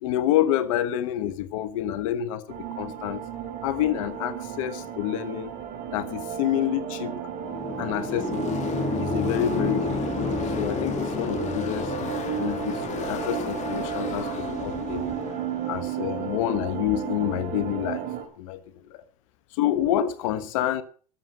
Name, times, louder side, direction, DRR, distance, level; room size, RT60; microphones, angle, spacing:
voice 1, 0.0-3.3 3.6-5.5 5.9-7.2 7.8-8.6 9.0-11.9 12.4-15.1 15.6-18.1 18.4-18.6 18.9-19.0 19.5-20.8, left 12 dB, 75° left, 1.1 m, -28 dB
sound 1, 2.5-18.2, right 10 dB, 55° right, 3.7 m, -33 dB
Car passing by / Race car auto racing, 6.9-17.3, left 7 dB, 45° left, 2.1 m, -37 dB
sound 2, 7.4-12.4, left 3 dB, 25° left, 2.6 m, -30 dB
13.0 x 7.6 x 7.7 m
supercardioid pair, 95°, 17 cm